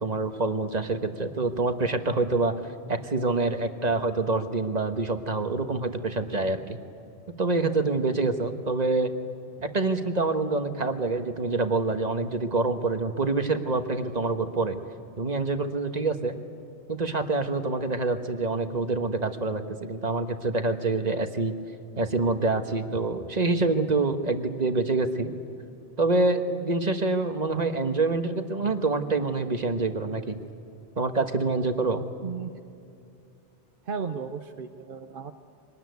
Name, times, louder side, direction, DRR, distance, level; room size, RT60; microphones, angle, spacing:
voice 1, 0.0-2.6 2.9-6.8 7.4-9.1 9.6-14.8 15.2-16.4 16.9-21.5 22.0-25.3 26.0-30.4 31.0-32.0, right 3 dB, 40° right, 7 dB, 1.4 m, -26 dB
voice 2, 33.9-35.3, right 6 dB, 55° right, 6 dB, 0.9 m, -34 dB
24.5 x 19.5 x 9.4 m, 2.6 s
omnidirectional pair, 1.2 m